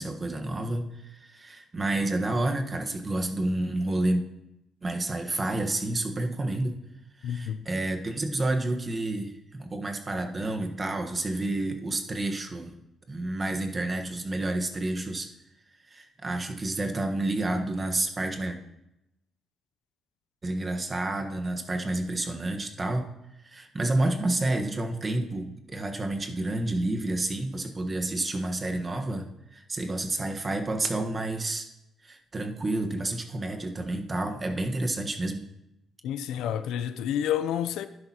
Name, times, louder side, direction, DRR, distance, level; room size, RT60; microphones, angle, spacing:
voice 1, 0.0-4.2 4.8-6.7 7.2-12.7 13.1-15.3 15.9-18.6 20.4-23.1 23.4-31.7 32.0-35.4, right 2 dB, 30° right, 1.2 m, -29 dB
voice 2, 7.2-7.6 36.0-37.9, left 10 dB, 85° left, 0.5 m, -29 dB
11.5 x 10.5 x 2.9 m
cardioid pair, 90°, 0 cm